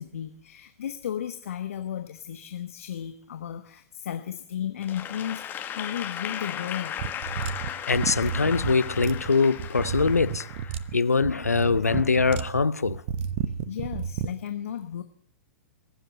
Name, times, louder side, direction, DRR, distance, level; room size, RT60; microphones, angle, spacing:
voice 1, 0.0-7.2 13.5-15.0, left 9 dB, 65° left, 1.1 m, -34 dB
Applause / Crowd, 4.8-11.1, left 9 dB, 25° left, 1.6 m, -36 dB
sound 1, 7.0-14.3, right 8 dB, 45° right, 1.0 m, -32 dB
voice 2, 7.9-10.5 10.9-13.0, left 4 dB, 85° left, 0.6 m, -23 dB
22.5 x 7.8 x 8.1 m
figure-of-eight pair, 105°, 8 cm